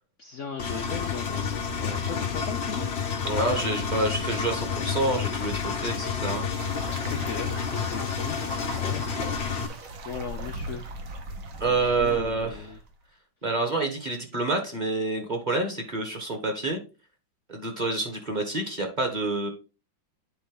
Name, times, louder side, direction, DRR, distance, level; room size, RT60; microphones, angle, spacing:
voice 1, 0.2-2.9 7.1-10.9 11.6-12.8, left 6 dB, 85° left, 5 dB, 0.6 m, -38 dB
Engine, 0.6-9.7, left 6 dB, 45° left, 0.9 m, -30 dB
voice 2, 3.2-6.4 11.6-12.8 13.4-16.8 17.5-19.5, right 2 dB, 25° right, 4 dB, 1.4 m, -28 dB
sound 1, 6.5-12.9, right 2 dB, 50° right, 1.2 m, -39 dB
9.3 x 4.2 x 3.7 m, 0.31 s
omnidirectional pair, 2.2 m